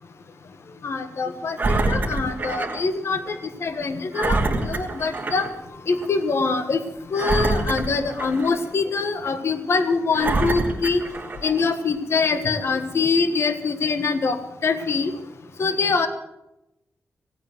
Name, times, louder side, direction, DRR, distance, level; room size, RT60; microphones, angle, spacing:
voice 1, 0.8-3.4 3.6-5.5 5.9-6.8 7.1-11.0 11.4-14.4 14.6-15.1 15.6-16.1, left 4 dB, 60° left, 9 dB, 1.4 m, -24 dB
Engine, 1.6-2.8 3.3-3.4 4.1-5.5 5.9-6.1 7.1-8.7 9.3-9.4 10.1-11.6 12.3-12.4, right 2 dB, 35° right, 2.8 m, -25 dB
17.5 x 9.3 x 7.8 m, 0.90 s
wide cardioid pair, 100°, 5 cm